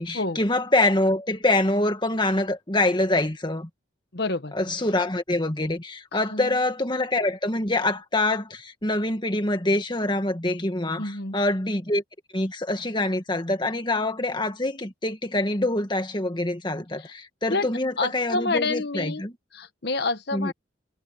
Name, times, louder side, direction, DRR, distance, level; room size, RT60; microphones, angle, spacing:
voice 1, 0.0-3.7 4.5-12.0 12.3-19.3 20.3-20.5, left 2 dB, 25° left, 1.9 m, -25 dB
voice 2, 4.1-4.5 6.1-6.6 11.0-11.4 17.0-17.1 17.5-17.7 18.0-19.2 19.5-20.5, left 3 dB, 55° left, 1.4 m, -28 dB
head